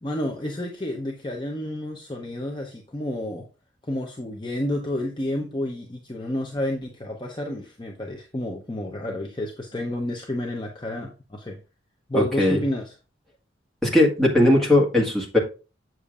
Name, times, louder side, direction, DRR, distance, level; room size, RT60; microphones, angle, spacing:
voice 1, 0.0-3.5 3.8-11.6 12.1-13.0, left 1 dB, 25° left, 1 dB, 0.7 m, -30 dB
voice 2, 12.1-12.6 13.8-15.4, left 1 dB, ahead, -4 dB, 1.6 m, -19 dB
7.6 x 6.9 x 2.4 m, 0.32 s
head